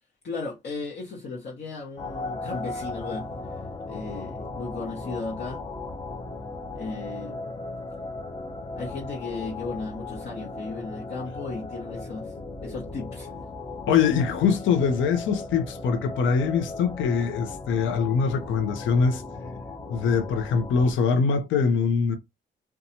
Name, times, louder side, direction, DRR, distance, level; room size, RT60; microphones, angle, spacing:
voice 1, 0.2-3.6 3.9-5.7 6.7-7.6 8.8-12.3 12.6-13.3, left 3 dB, 60° left, 1.0 m, -36 dB
sound 1, 2.0-20.9, left 3 dB, 20° left, 0.5 m, -37 dB
voice 2, 13.9-19.2 19.9-22.2, left 5 dB, 75° left, 0.6 m, -23 dB
2.7 x 2.3 x 2.7 m
cardioid pair, 90°, 20 cm